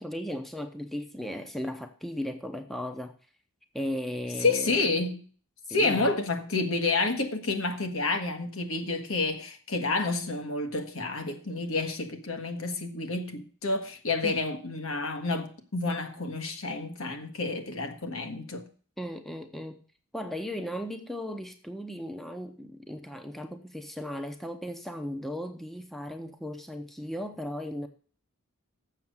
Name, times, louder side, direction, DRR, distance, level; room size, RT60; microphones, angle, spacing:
voice 1, 0.0-3.1 3.7-4.9 5.7-6.1 14.2-14.4 19.0-19.8 20.1-27.9, equal, ahead, 0.7 m, -36 dB
voice 2, 4.4-5.2 5.7-18.6, left 3 dB, 75° left, 1.5 m, -29 dB
7.3 x 6.6 x 7.9 m
head